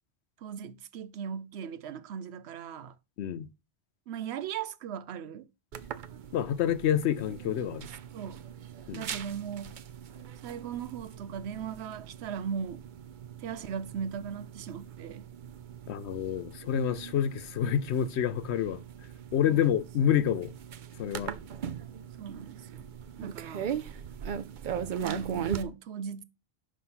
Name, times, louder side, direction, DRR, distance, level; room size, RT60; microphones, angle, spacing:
voice 1, 0.4-2.9 4.1-5.5 8.1-8.4 8.9-9.8 10.4-12.8 13.4-15.3 19.5-19.6 22.2-22.9 23.2-23.7 25.0-26.2, right 7 dB, 80° right, 0.9 m, -38 dB
voice 2, 3.2-3.5 6.3-7.9 8.9-9.1 15.9-18.8 19.3-20.5 21.0-21.4, left 9 dB, 90° left, 0.9 m, -28 dB
sound 1, 5.7-25.6, right 8 dB, 55° right, 0.6 m, -40 dB
5.5 x 5.1 x 5.6 m
omnidirectional pair, 1.1 m